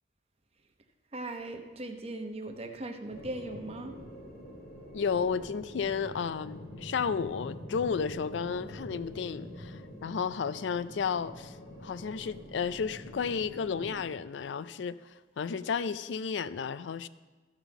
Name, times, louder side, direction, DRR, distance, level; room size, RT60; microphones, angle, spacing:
voice 1, 1.1-3.9, right 2 dB, 35° right, 0.9 m, -39 dB
sound 1, 3.1-14.0, equal, 55° left, 2.1 m, -45 dB
voice 2, 4.9-17.1, left 6 dB, 90° left, 0.4 m, -33 dB
13.0 x 5.5 x 7.1 m
head